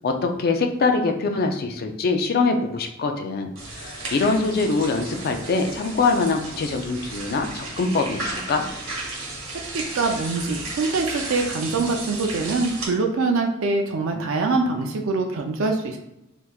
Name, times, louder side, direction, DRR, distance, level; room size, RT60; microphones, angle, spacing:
voice 1, 0.0-8.6, left 3 dB, 50° left, 4 dB, 0.4 m, -23 dB
sound 1, 3.5-12.9, right 2 dB, 85° right, 1.1 m, -34 dB
voice 2, 9.7-16.0, right 3 dB, 65° right, 3 dB, 0.4 m, -24 dB
3.4 x 2.9 x 2.3 m, 0.89 s
head